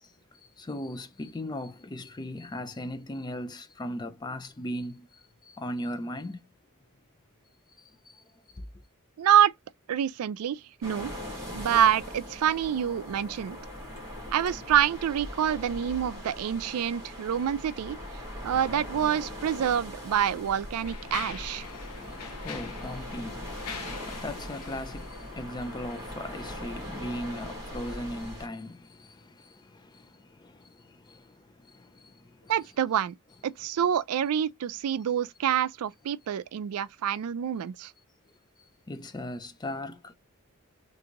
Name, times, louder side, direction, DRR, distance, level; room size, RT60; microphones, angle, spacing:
voice 1, 0.6-5.1 5.5-6.4 21.7-30.1 30.4-31.2 31.7-32.1 32.5-32.7 33.3-33.4 38.9-40.1, left 1 dB, 20° left, 0.4 m, -38 dB
voice 2, 9.2-9.5 9.9-11.1 11.5-13.6 14.3-18.0 18.4-21.7 32.5-33.2 33.4-37.9, right 9 dB, 75° right, 0.3 m, -27 dB
sound 1, 10.8-28.5, equal, 15° right, 1.9 m, -40 dB
Mechanisms, 19.5-19.6 20.3-26.1, left 6 dB, 85° left, 0.6 m, -43 dB
3.7 x 2.6 x 2.8 m
head